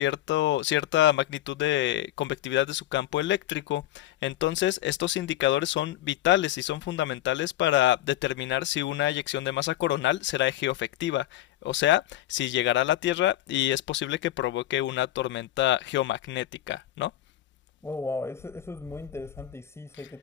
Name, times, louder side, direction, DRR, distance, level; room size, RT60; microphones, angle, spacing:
voice 1, 0.0-17.1, left 14 dB, 75° left, 1.2 m, -27 dB
voice 2, 17.8-20.2, left 2 dB, 15° left, 6.1 m, -36 dB
supercardioid pair, 85°, 19 cm